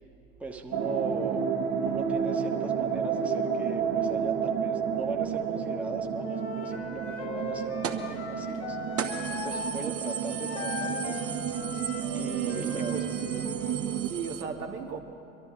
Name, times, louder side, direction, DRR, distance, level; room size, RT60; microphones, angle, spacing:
voice 1, 0.4-1.4 1.8-8.8 9.3-11.3 12.1-13.2 14.3-14.4, right 3 dB, 5° right, 1 dB, 1.2 m, -40 dB
sound 1, 0.7-14.1, right 7 dB, 50° right, 1.7 m, -31 dB
Wind instrument woodwind instrument, 6.2-9.8 10.0-13.9, left 3 dB, 70° left, 1.8 m, -39 dB
sound 2, 7.8-8.1 8.5-8.6 9.0-14.4, right 8 dB, 30° right, 1.1 m, -38 dB
voice 2, 12.4-13.5 14.0-15.0, right 6 dB, 70° right, 1 dB, 1.8 m, -37 dB
24.0 x 12.5 x 3.8 m, 2.7 s
figure-of-eight pair, 80°, 44 cm